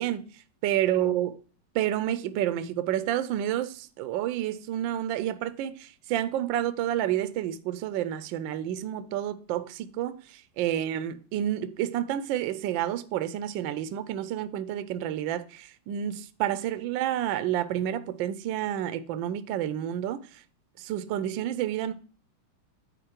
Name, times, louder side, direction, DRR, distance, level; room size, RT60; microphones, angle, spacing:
voice 1, 0.0-1.3 1.7-20.4 20.8-21.9, right 11 dB, 75° right, 1.2 m, -29 dB
9.1 x 4.3 x 4.3 m
omnidirectional pair, 2.3 m